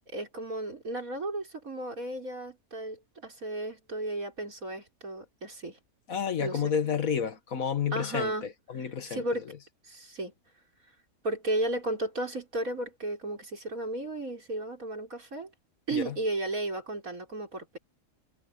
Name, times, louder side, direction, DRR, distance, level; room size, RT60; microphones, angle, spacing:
voice 1, 0.1-5.8 6.4-6.7 7.9-8.5 8.7-9.5 9.8-10.3 11.2-15.5 15.9-17.8, right 2 dB, 70° right, 5.8 m, -34 dB
voice 2, 6.1-9.2 15.9-16.2, left 7 dB, 70° left, 1.8 m, -30 dB
omnidirectional pair, 1.5 m